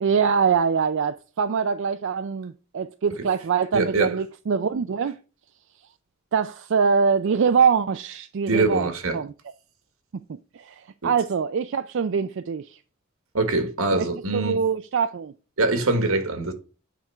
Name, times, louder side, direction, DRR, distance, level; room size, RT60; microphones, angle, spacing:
voice 1, 0.0-5.2 6.3-9.3 10.5-12.8 13.9-14.1 14.3-15.3, right 6 dB, 60° right, 0.4 m, -24 dB
voice 2, 3.7-4.2 8.5-9.2 11.0-11.1 13.3-14.6 15.6-16.5, right 3 dB, 80° right, 1.6 m, -23 dB
9.0 x 3.7 x 5.5 m
head